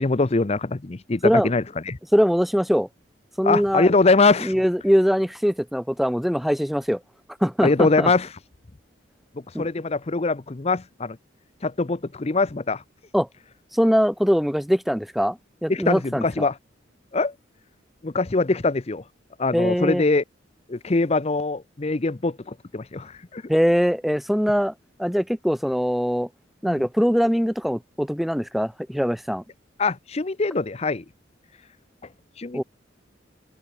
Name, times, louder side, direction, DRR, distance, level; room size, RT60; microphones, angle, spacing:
voice 1, 0.0-2.0 3.4-4.5 7.6-8.3 9.6-11.2 11.6-12.8 15.7-16.5 17.1-17.3 18.0-19.0 19.4-20.2 20.7-23.4 26.6-26.9 29.8-31.0 32.4-32.6, left 3 dB, 35° left, 0.6 m, -23 dB
voice 2, 2.1-2.9 3.4-3.9 4.4-7.0 7.4-8.1 9.5-9.6 13.1-13.3 13.7-16.5 19.5-20.0 23.5-24.7 25.0-26.3 26.6-29.4 32.5-32.6, equal, ahead, 0.7 m, -22 dB
open air
head